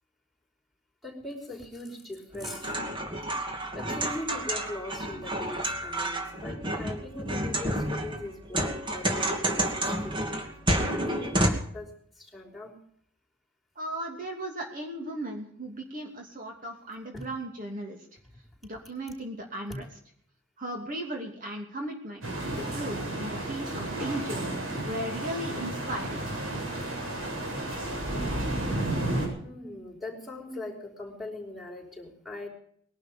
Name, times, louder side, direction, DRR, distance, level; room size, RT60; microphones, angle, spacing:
voice 1, 1.0-2.7 3.7-11.9 12.2-12.7 17.1-17.3 19.7-19.8 29.4-32.5, left 2 dB, ahead, 2 dB, 5.3 m, -40 dB
sound 1, 2.3-11.5, right 1 dB, 25° right, 2.6 m, -30 dB
voice 2, 13.7-18.0 18.6-19.9 20.6-24.5 24.9-26.2, right 1 dB, 40° right, 1 dB, 2.9 m, -36 dB
sound 2, 22.2-29.3, right 1 dB, 85° right, 7.6 m, -32 dB
21.5 x 11.5 x 5.4 m, 0.63 s
head